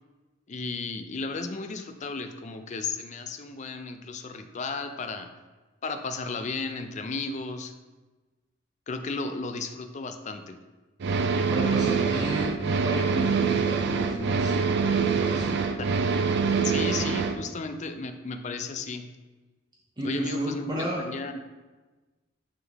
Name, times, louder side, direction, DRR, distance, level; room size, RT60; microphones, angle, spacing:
voice 1, 0.5-5.3 5.8-7.7 8.9-10.6 16.6-19.1 20.0-21.6, left 4 dB, 40° left, 7 dB, 0.4 m, -34 dB
sound 1, 11.0-17.4, right 5 dB, 60° right, 0.4 m, -25 dB
voice 2, 11.5-14.6 14.8-15.6 20.0-21.0, right 1 dB, 20° right, -4 dB, 0.7 m, -32 dB
7.8 x 3.7 x 3.4 m, 1.2 s
head